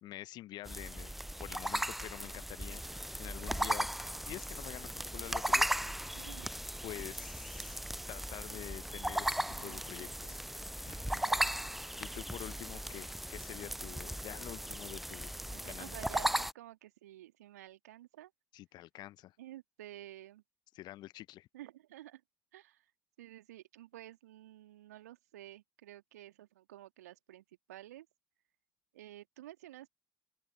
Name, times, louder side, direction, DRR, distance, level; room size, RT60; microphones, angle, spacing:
voice 1, 0.0-1.1 1.4-3.9 4.2-6.0 6.8-7.8 8.1-10.4 10.9-11.2 12.0-15.3 15.7-15.9 18.5-19.3 20.7-21.5, left 15 dB, 55° left, 1.1 m, -47 dB
sound 1, 0.7-16.5, equal, ahead, 0.3 m, -37 dB
voice 2, 6.1-6.5 9.5-10.4 11.1-11.5 15.5-18.3 19.4-20.4 21.5-22.2 22.5-22.8 23.2-28.1 28.9-29.9, right 14 dB, 75° right, 2.3 m, -52 dB
open air
figure-of-eight pair, 55°, 9 cm